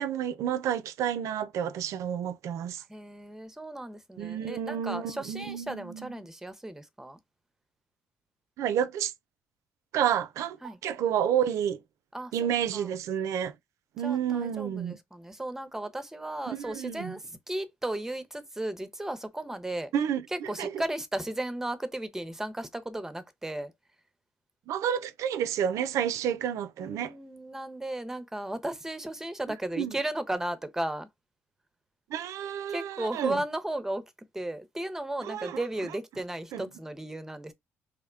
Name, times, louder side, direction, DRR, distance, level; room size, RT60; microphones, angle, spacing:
voice 1, 0.0-2.8 4.2-6.1 8.6-9.1 9.9-10.6 10.8-11.8 12.3-13.5 14.0-15.0 16.5-17.2 19.9-20.8 24.7-27.1 29.8-30.0 32.1-33.4 35.2-35.6 36.5-36.6, right 9 dB, 75° right, 0.4 m, -30 dB
voice 2, 2.9-7.2 10.6-10.8 12.1-12.3 12.7-12.9 14.0-19.9 20.3-23.7 26.8-31.1 32.7-34.0 34.3-37.5, right 1 dB, 10° right, 0.6 m, -35 dB
3.0 x 2.1 x 2.3 m
cardioid pair, 80°, 5 cm